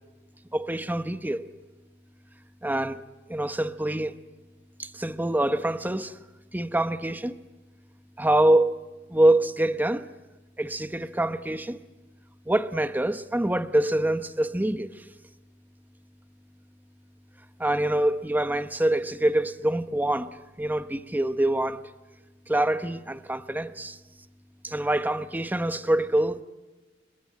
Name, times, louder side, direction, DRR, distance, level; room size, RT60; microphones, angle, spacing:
voice 1, 0.5-1.5 2.6-3.0 3.3-4.1 4.8-6.1 6.5-7.4 8.2-8.7 9.1-10.1 10.6-11.8 12.5-14.9 17.6-21.8 22.5-24.0 24.6-26.4, right 1 dB, 10° right, 0.9 m, -25 dB
30.0 x 20.0 x 8.8 m
head